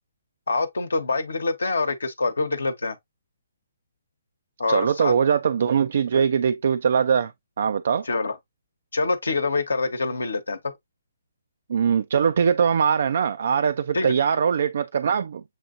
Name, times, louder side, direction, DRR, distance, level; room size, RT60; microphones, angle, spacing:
voice 1, 0.5-3.0 4.6-5.1 8.1-8.3 8.9-10.6 13.9-14.1, left 3 dB, 75° left, 0.9 m, -25 dB
voice 2, 4.7-7.3 7.6-8.1 11.7-15.4, right 7 dB, 60° right, 0.3 m, -21 dB
7.3 x 2.7 x 2.5 m
figure-of-eight pair, 140°, 0 cm